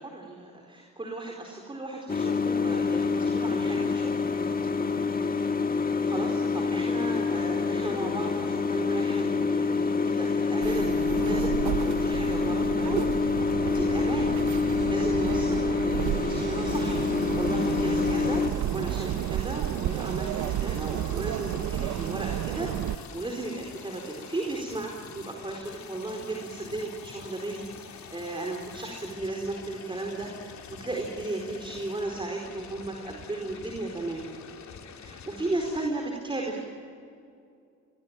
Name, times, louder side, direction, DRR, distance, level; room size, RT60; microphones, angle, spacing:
voice 1, 0.0-4.2 6.0-13.2 13.7-14.3 14.9-34.2 34.9-36.7, right 2 dB, 15° right, 1 dB, 4.5 m, -35 dB
sound 1, 2.1-18.5, left 4 dB, 30° left, 1.8 m, -27 dB
sound 2, 10.6-23.0, right 12 dB, 75° right, 0.9 m, -32 dB
sound 3, 16.7-35.9, left 7 dB, 65° left, 3.4 m, -46 dB
26.5 x 22.0 x 9.0 m, 2.4 s
cardioid pair, 90°, 30 cm